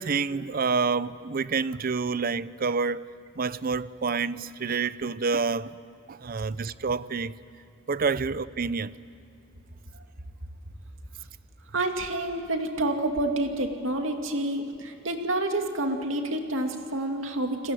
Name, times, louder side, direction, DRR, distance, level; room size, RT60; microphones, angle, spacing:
voice 1, 0.0-3.1 3.4-5.7 6.1-7.4 7.9-9.0, right 4 dB, 45° right, 0.6 m, -28 dB
voice 2, 11.7-17.7, right 1 dB, 75° right, 2.4 m, -28 dB
29.5 x 21.0 x 9.3 m
head